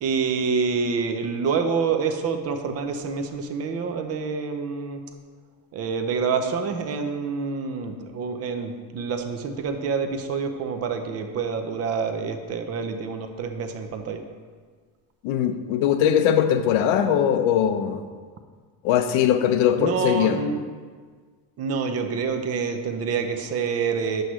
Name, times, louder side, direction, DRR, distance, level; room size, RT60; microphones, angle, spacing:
voice 1, 0.0-5.0 5.7-14.2 19.8-20.6 21.6-24.2, right 5 dB, 35° right, 6 dB, 0.5 m, -27 dB
voice 2, 15.2-18.0 18.8-20.4, left 9 dB, 85° left, 9 dB, 0.8 m, -21 dB
9.8 x 7.7 x 3.1 m, 1.6 s
cardioid pair, 175°, 47 cm